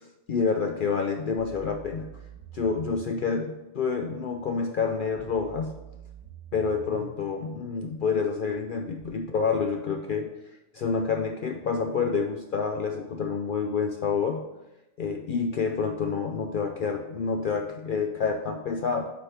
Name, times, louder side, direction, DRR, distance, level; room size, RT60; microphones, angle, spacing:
voice 1, 0.3-2.2 2.5-5.8 6.5-10.3 10.7-14.4 15.0-19.1, left 5 dB, 60° left, 4 dB, 0.5 m, -28 dB
sound 1, 1.4-3.3 5.2-7.2 9.0-9.1, right 6 dB, 30° right, 0.4 m, -45 dB
8.1 x 3.4 x 5.6 m, 0.99 s
omnidirectional pair, 1.3 m